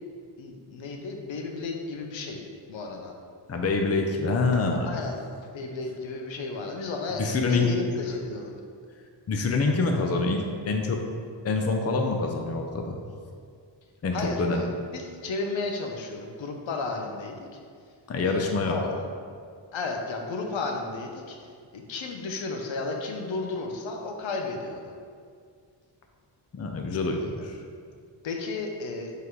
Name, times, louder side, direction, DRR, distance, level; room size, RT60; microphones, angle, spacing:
voice 1, 0.4-3.1 4.8-5.2 5.5-8.5 14.1-17.4 18.2-18.4 18.7-19.0 19.7-21.4 21.7-25.0 27.0-27.3 28.2-29.1, left 3 dB, 80° left, 2 dB, 0.9 m, -33 dB
voice 2, 3.5-5.0 7.2-7.7 9.3-11.0 11.4-13.0 14.0-14.6 18.1-18.8 26.5-27.6, left 3 dB, 35° left, 2 dB, 0.6 m, -26 dB
5.5 x 4.0 x 4.6 m, 2.2 s
wide cardioid pair, 125°, 45 cm